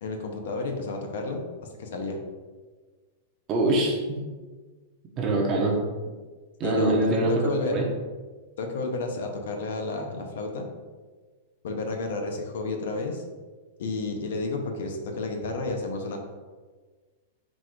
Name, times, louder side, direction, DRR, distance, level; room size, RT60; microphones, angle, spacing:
voice 1, 0.0-1.4 1.8-2.2 6.6-7.8 8.6-10.7 11.6-13.2 13.8-16.2, left 3 dB, 70° left, 3 dB, 0.7 m, -31 dB
voice 2, 3.5-4.0 5.2-5.8 6.6-7.9, right 2 dB, 20° right, 0 dB, 0.6 m, -23 dB
4.1 x 2.5 x 4.5 m, 1.4 s
supercardioid pair, 175°, 0 cm